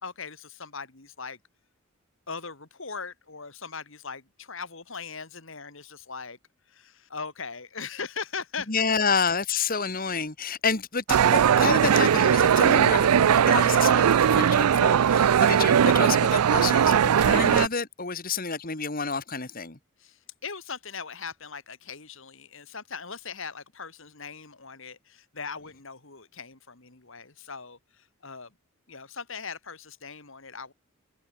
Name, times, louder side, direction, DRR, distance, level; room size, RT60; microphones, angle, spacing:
voice 1, 0.0-1.4 2.3-6.4 6.7-8.9 20.0-28.5 28.9-30.7, left 5 dB, 60° left, 2.2 m, -39 dB
voice 2, 8.7-19.8, left 5 dB, 40° left, 2.0 m, -29 dB
sound 1, 11.1-17.7, right 8 dB, 90° right, 0.4 m, -19 dB
open air
head